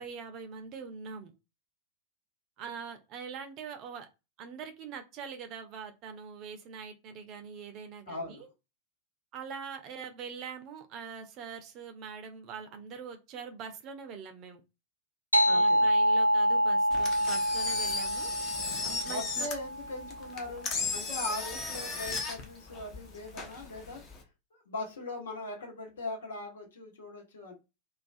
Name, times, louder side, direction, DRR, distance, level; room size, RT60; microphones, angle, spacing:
voice 1, 0.0-1.3 2.6-4.1 4.4-8.5 9.3-14.6 15.4-18.3 18.8-19.5, right 6 dB, 40° right, 0.5 m, -43 dB
voice 2, 8.1-8.4 15.5-15.9 19.0-24.0 24.5-27.5, left 2 dB, 65° left, 1.0 m, -40 dB
sound 1, 15.3-20.3, equal, 90° right, 0.3 m, -27 dB
Engine, 16.9-24.2, left 4 dB, 30° left, 0.6 m, -36 dB
2.4 x 2.2 x 2.5 m
figure-of-eight pair, 90°, 0 cm